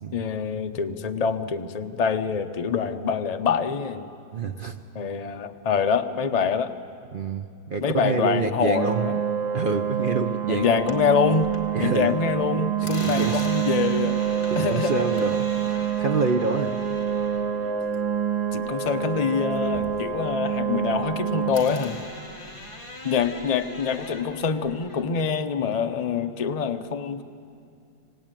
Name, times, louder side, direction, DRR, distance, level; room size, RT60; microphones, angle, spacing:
voice 1, 0.1-4.1 4.9-6.7 7.8-9.1 10.5-11.5 11.8-14.1 14.6-14.9 18.5-22.0 23.0-27.2, left 6 dB, 50° left, 7 dB, 0.4 m, -25 dB
voice 2, 4.3-4.8 7.1-9.1 9.5-10.8 11.7-12.2 12.8-13.4 14.5-15.5 16.0-16.8 17.9-18.0, right 4 dB, 60° right, 7 dB, 0.5 m, -27 dB
sound 1, 8.7-21.5, right 8 dB, 85° right, 2.2 m, -27 dB
sound 2, 10.6-12.0 12.3-19.2 19.5-21.2 21.5-25.1, left 1 dB, 15° left, 2.1 m, -41 dB
26.5 x 18.0 x 9.1 m, 2.6 s
omnidirectional pair, 2.0 m